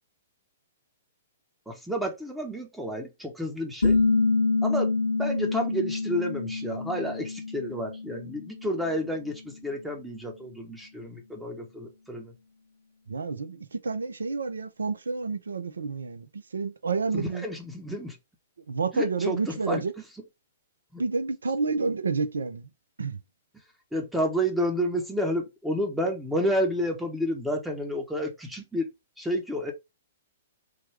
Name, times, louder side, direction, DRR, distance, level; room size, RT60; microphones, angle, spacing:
voice 1, 1.7-4.0 4.6-4.9 5.2-12.3 17.1-18.2 18.9-19.8 20.9-21.0 23.9-28.9 29.2-29.7, equal, 5° right, 0.7 m, -30 dB
sound 1, 3.8-9.2, left 3 dB, 85° left, 0.5 m, -27 dB
voice 2, 13.1-17.5 18.7-19.9 21.0-22.7 23.0-23.2, right 4 dB, 80° right, 0.5 m, -29 dB
3.1 x 2.2 x 3.2 m
figure-of-eight pair, 115°, 0 cm